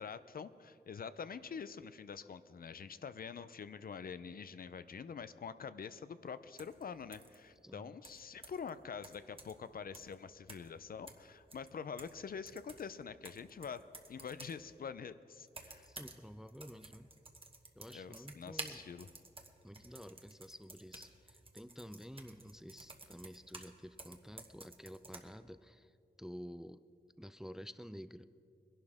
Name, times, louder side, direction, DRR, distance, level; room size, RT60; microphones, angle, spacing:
voice 1, 0.0-15.9 17.9-19.1, left 6 dB, 60° left, 13 dB, 0.5 m, -46 dB
sound 1, 6.6-6.8 7.1-7.4 8.0-8.7 9.0-9.7 9.9-10.1 10.5-10.8 11.1-12.2 12.5-14.6 15.5-16.2 16.5-23.7 24.0-25.2, right 2 dB, 30° right, 1.2 m, -52 dB
voice 2, 7.6-8.0 15.8-17.1 17.8-18.8 19.6-26.8 27.2-28.3, equal, 5° right, 13 dB, 0.4 m, -51 dB
21.0 x 11.5 x 3.6 m, 2.4 s
wide cardioid pair, 75°, 17 cm